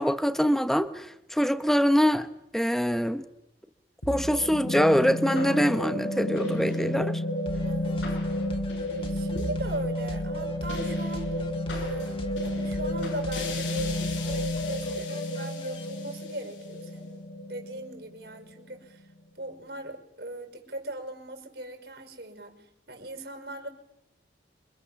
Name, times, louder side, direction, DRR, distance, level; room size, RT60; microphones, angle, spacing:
voice 1, 0.0-2.3 2.5-3.2 4.1-7.2, equal, ahead, 10 dB, 1.0 m, -24 dB
sound 1, 4.0-18.5, left 1 dB, 80° left, 6.5 m, -31 dB
sound 2, 7.5-15.9, equal, 30° left, 2.6 m, -41 dB
voice 2, 7.6-8.2 9.0-11.3 11.7-19.1 19.4-23.7, right 1 dB, 60° right, 4 dB, 5.6 m, -39 dB
28.0 x 24.5 x 7.2 m, 0.87 s
head